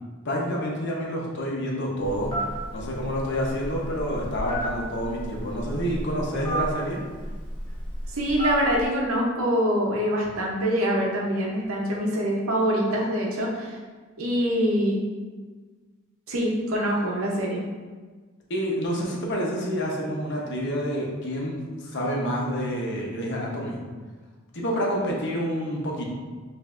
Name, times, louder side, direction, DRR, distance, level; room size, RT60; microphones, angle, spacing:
voice 1, 0.2-2.3 2.7-7.0 18.5-23.8 24.5-26.0, equal, 60° left, -2 dB, 0.8 m, -28 dB
Telephone, 2.0-8.8, right 1 dB, 25° left, 1.0 m, -33 dB
voice 2, 8.1-13.8 14.2-15.0 16.3-17.6, equal, 75° right, -1 dB, 0.8 m, -24 dB
5.4 x 2.6 x 2.5 m, 1.4 s
head